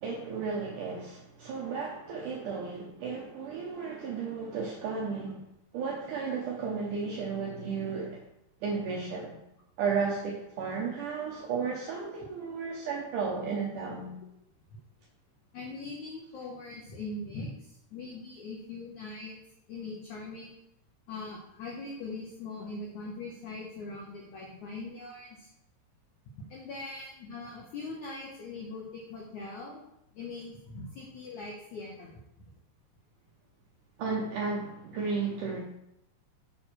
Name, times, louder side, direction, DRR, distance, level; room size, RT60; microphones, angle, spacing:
voice 1, 0.0-5.4 5.7-8.2 8.6-9.3 9.8-14.1 34.0-35.6, right 5 dB, 85° right, -2 dB, 1.8 m, -33 dB
voice 2, 15.5-19.3 19.7-20.5 21.1-25.5 26.5-29.8 30.1-32.5, left 3 dB, 80° left, -2 dB, 1.7 m, -41 dB
7.3 x 4.4 x 6.0 m, 0.82 s
omnidirectional pair, 5.0 m